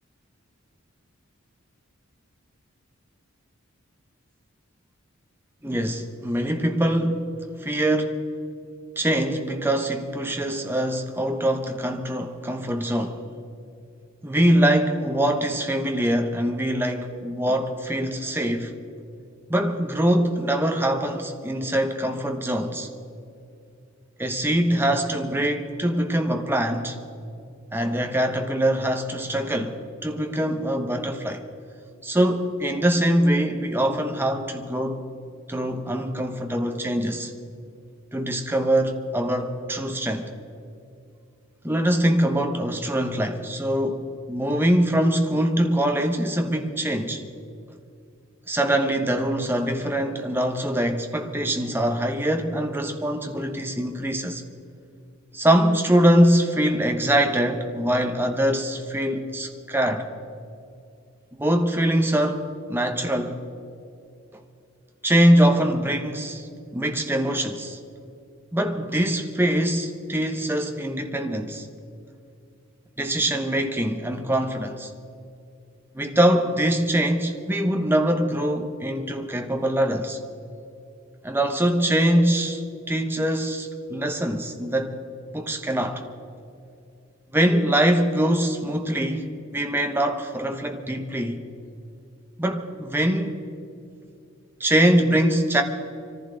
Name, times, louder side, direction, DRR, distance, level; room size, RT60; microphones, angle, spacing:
voice 1, 5.6-7.3 7.6-8.1 9.0-13.2 14.2-18.7 19.5-22.9 24.2-27.0 27.7-31.4 32.0-35.0 35.5-37.3 38.1-40.3 41.6-47.2 48.5-54.4 55.3-60.0 61.4-63.4 65.0-67.8 68.5-71.7 73.0-74.9 75.9-80.2 81.2-82.6 82.9-85.0 85.3-86.0 87.3-91.4 92.4-93.4 94.6-95.6, right 1 dB, 10° right, 0.9 m, -23 dB
24.0 x 14.5 x 3.9 m
head